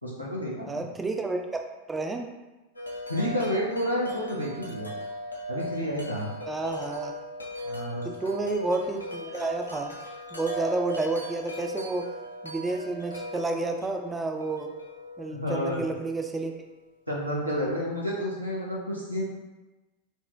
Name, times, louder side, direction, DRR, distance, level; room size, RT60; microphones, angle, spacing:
voice 1, 0.0-0.8 3.1-4.9 5.5-6.3 7.6-8.1 15.3-15.8 17.1-19.2, equal, 90° right, -4 dB, 0.8 m, -30 dB
voice 2, 0.7-1.6 1.9-2.3 6.5-7.1 8.0-9.9 10.3-12.1 12.4-14.7 15.2-16.5, right 3 dB, 10° right, 3 dB, 0.3 m, -30 dB
Wind chime, 2.8-16.7, left 1 dB, 80° left, 0.5 m, -38 dB
4.3 x 2.1 x 2.3 m, 1.1 s
figure-of-eight pair, 90°, 0 cm